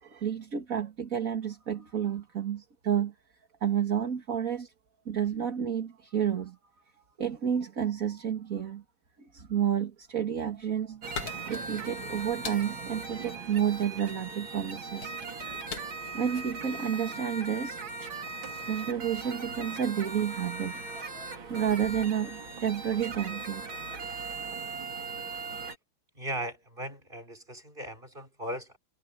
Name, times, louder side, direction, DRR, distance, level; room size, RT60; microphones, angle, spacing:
voice 1, 0.0-3.1 3.6-4.7 5.1-6.6 7.2-8.8 9.3-11.0 11.5-15.1 15.9-17.8 18.7-20.8 21.5-23.6, right 8 dB, 40° right, 2.3 m, -30 dB
sound 1, 10.3-17.7, left 6 dB, 90° left, 2.8 m, -44 dB
sound 2, 11.0-25.8, right 4 dB, 65° right, 3.8 m, -39 dB
voice 2, 26.1-28.8, right 1 dB, 20° right, 6.6 m, -38 dB
omnidirectional pair, 2.4 m